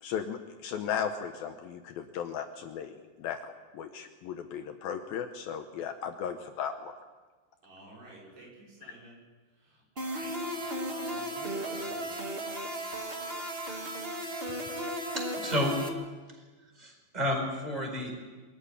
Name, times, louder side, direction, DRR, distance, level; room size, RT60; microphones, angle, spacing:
voice 1, 0.0-6.9, left 8 dB, 70° left, 6 dB, 2.5 m, -36 dB
voice 2, 7.6-9.2 9.6-12.1, right 2 dB, 70° right, -4 dB, 8.0 m, -50 dB
sound 1, 10.0-15.9, equal, 45° right, 0.7 m, -35 dB
voice 3, 15.1-15.7 16.8-18.1, equal, 10° right, 2 dB, 4.4 m, -31 dB
23.5 x 14.0 x 10.0 m, 1.3 s
omnidirectional pair, 4.9 m